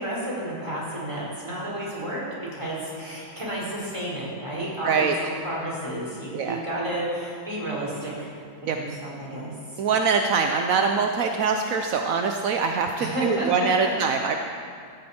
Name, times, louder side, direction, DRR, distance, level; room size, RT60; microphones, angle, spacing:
voice 1, 0.0-2.2 2.5-8.3 8.7-9.8 13.0-13.9, right 1 dB, 15° right, -6 dB, 4.6 m, -31 dB
voice 2, 4.8-5.1 6.3-6.6 8.7-8.8 9.8-14.4, right 5 dB, 65° right, 4 dB, 0.8 m, -23 dB
17.5 x 14.0 x 4.4 m, 2.3 s
omnidirectional pair, 2.1 m